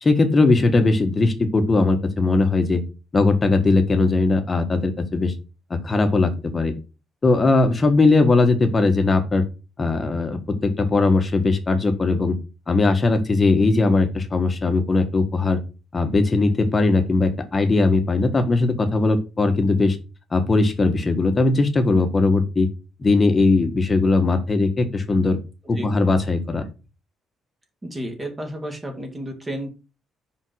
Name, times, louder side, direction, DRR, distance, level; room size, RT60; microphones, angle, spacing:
voice 1, 0.0-2.8 3.1-5.3 5.7-6.7 7.2-9.4 9.8-12.4 12.7-15.6 15.9-20.0 20.3-22.7 23.0-25.4 25.7-26.6, left 3 dB, 25° left, 6 dB, 1.4 m, -19 dB
voice 2, 27.8-29.7, right 1 dB, 15° right, 5 dB, 2.0 m, -32 dB
5.5 x 5.3 x 6.3 m, 0.31 s
cardioid pair, 145°, 0 cm